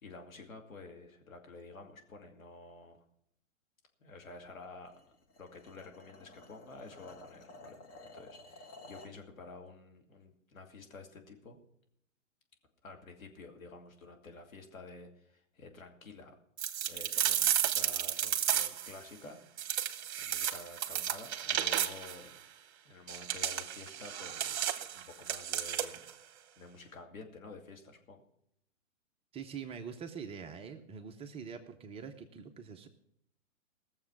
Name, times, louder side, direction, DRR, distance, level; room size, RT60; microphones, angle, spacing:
voice 1, 0.0-3.0 4.0-4.9 5.4-7.8 8.1-11.6 12.8-16.4 16.9-19.4 20.2-22.4 22.8-26.1 26.6-28.2, left 3 dB, 80° left, 3 dB, 2.6 m, -50 dB
sound 1, 4.8-9.2, left 2 dB, 25° left, 1.7 m, -53 dB
sound 2, 16.6-18.9 19.6-22.2 23.1-26.1, right 10 dB, 55° right, 1.0 m, -33 dB
voice 2, 29.3-32.9, right 6 dB, 15° right, 6 dB, 0.7 m, -44 dB
18.0 x 7.1 x 5.9 m, 0.75 s
hypercardioid pair, 120°, 40 cm